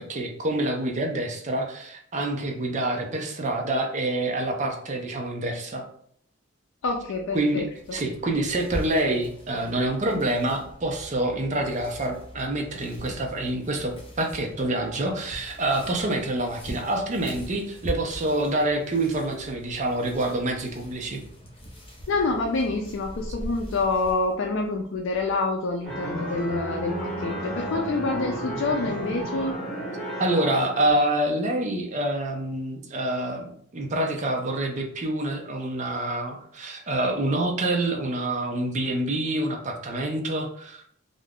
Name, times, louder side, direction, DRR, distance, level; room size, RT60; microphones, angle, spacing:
voice 1, 0.0-5.9 7.3-21.2 30.2-40.8, right 1 dB, 40° right, 2 dB, 0.5 m, -27 dB
voice 2, 6.8-7.7 22.1-29.6, left 3 dB, 75° left, 1 dB, 0.4 m, -27 dB
sound 1, 7.7-24.4, equal, 30° left, 0.7 m, -41 dB
sound 2, 25.8-31.0, right 1 dB, ahead, 1.1 m, -33 dB
2.5 x 2.3 x 3.4 m, 0.63 s
head